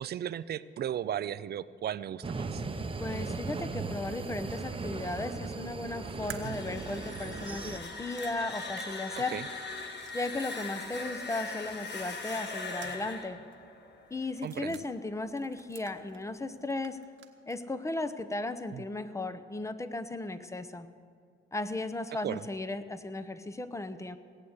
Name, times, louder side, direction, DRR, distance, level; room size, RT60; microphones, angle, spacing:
voice 1, 0.0-2.6 6.4-6.6 9.3-9.5 14.4-14.8 18.7-18.8 22.2-22.4, right 10 dB, 55° right, 16 dB, 0.5 m, -35 dB
sound 1, 2.2-7.8, right 4 dB, 25° right, 0.9 m, -37 dB
voice 2, 3.0-9.4 10.1-13.4 14.1-17.0 17.5-20.9 21.5-24.2, left 2 dB, 15° left, 11 dB, 0.9 m, -36 dB
sound 2, 6.3-15.1, left 3 dB, 60° left, 1.7 m, -41 dB
sound 3, 6.3-10.7 11.0-11.1 12.3-13.3 13.5-13.6 14.3-14.8 15.4-16.4 16.7-17.6, right 8 dB, 75° right, 1.3 m, -50 dB
18.0 x 8.3 x 8.1 m, 2.1 s
cardioid pair, 90°, 20 cm